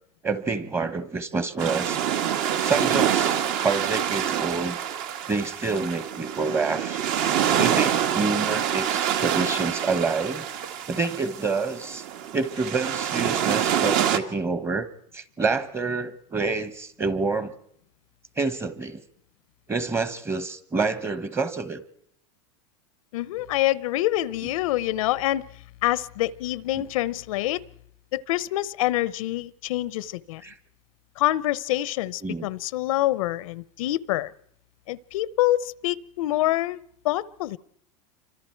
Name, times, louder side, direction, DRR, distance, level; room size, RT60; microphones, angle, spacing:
voice 1, 0.2-2.0 2.6-4.8 5.3-7.0 7.6-10.5 10.9-12.0 12.3-14.9 15.1-17.5 18.4-19.0 19.7-21.8 26.8-26.9 30.4-30.5 32.2-32.5, right 4 dB, 15° right, 12 dB, 1.2 m, -27 dB
sound 1, 1.6-14.2, right 9 dB, 50° right, 1.6 m, -26 dB
voice 2, 23.1-25.5 25.8-27.6 28.1-30.4 31.2-34.3 34.9-36.8 37.0-37.6, left 15 dB, 80° left, 19 dB, 0.8 m, -26 dB
28.5 x 24.5 x 4.6 m, 0.70 s
supercardioid pair, 155°, 17 cm